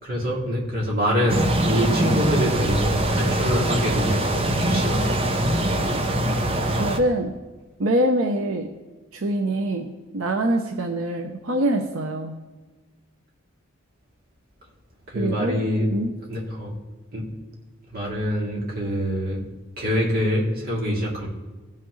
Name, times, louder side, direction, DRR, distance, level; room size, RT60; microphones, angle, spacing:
voice 1, 0.0-4.2 4.6-5.2 15.1-15.9 16.3-16.7 17.1-17.2 17.9-19.4 19.8-21.3, equal, 50° right, -4 dB, 2.8 m, -25 dB
sound 1, 1.3-7.0, right 1 dB, 30° right, 0.8 m, -23 dB
voice 2, 6.8-7.3 7.8-8.7 9.1-9.9 10.1-12.3 15.1-15.6 15.9-16.1, right 1 dB, 90° right, 3 dB, 0.8 m, -24 dB
16.5 x 5.8 x 3.2 m, 1.3 s
head